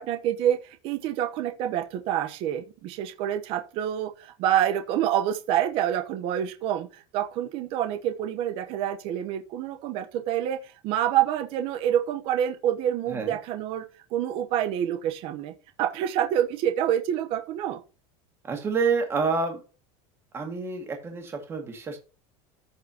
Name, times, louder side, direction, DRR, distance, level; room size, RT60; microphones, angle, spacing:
voice 1, 0.0-13.8 14.1-17.8, right 10 dB, 40° right, 0.9 m, -27 dB
voice 2, 13.1-13.4 18.4-19.6 20.3-22.0, right 4 dB, 15° right, 1.9 m, -28 dB
14.0 x 4.7 x 2.9 m
supercardioid pair, 175°, 15 cm